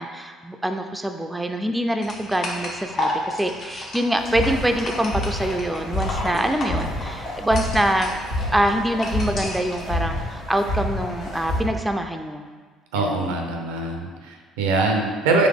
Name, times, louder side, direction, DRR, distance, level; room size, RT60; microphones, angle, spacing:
voice 1, 0.0-8.1 8.5-12.5 13.0-13.2, right 1 dB, 10° right, 5 dB, 0.3 m, -24 dB
sound 1, 2.0-9.8, left 1 dB, 50° left, 0.8 m, -32 dB
sound 2, 4.2-11.6, left 1 dB, 75° left, 1.3 m, -29 dB
voice 2, 12.9-15.5, right 3 dB, 90° right, 3 dB, 0.5 m, -23 dB
3.9 x 3.0 x 3.5 m, 1.5 s
supercardioid pair, 70°, 0 cm